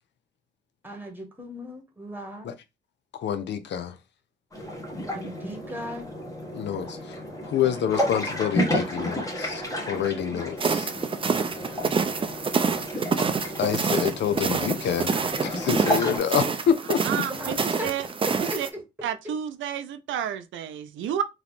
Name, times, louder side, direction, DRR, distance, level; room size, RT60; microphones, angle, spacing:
voice 1, 0.8-2.5 5.0-6.1 11.6-12.0 17.3-18.1 18.4-18.8 19.2-19.3, equal, 10° right, 1.6 m, -37 dB
voice 2, 3.2-3.9 6.5-7.2 7.4-10.9 13.6-15.2 15.4-17.2, left 8 dB, 65° left, 0.6 m, -27 dB
sound 1, 4.5-16.2, equal, 15° left, 1.6 m, -32 dB
sound 2, 10.6-18.7, right 5 dB, 25° right, 0.5 m, -27 dB
voice 3, 17.0-18.0 18.6-18.7 19.0-21.2, right 9 dB, 75° right, 0.5 m, -30 dB
3.7 x 3.0 x 3.5 m
cardioid pair, 90°, 20 cm